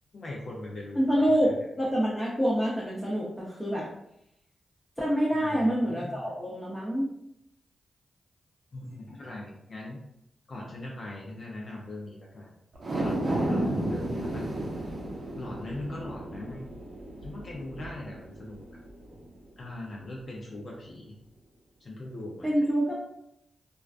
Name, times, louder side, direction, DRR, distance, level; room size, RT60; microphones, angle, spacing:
voice 1, 0.1-1.5 5.3-6.3 8.7-10.0 10.5-12.5 12.9-14.7 15.3-16.7 17.2-18.6 19.6-21.2 21.8-22.5, left 2 dB, 60° left, -3 dB, 0.5 m, -40 dB
voice 2, 1.0-3.9 5.0-7.1 22.4-23.0, equal, 5° left, -6 dB, 0.7 m, -26 dB
sound 1, 12.7-19.3 19.7-19.8, right 1 dB, 60° right, 0.6 m, -33 dB
2.3 x 2.1 x 2.4 m, 0.80 s
supercardioid pair, 45°, 0 cm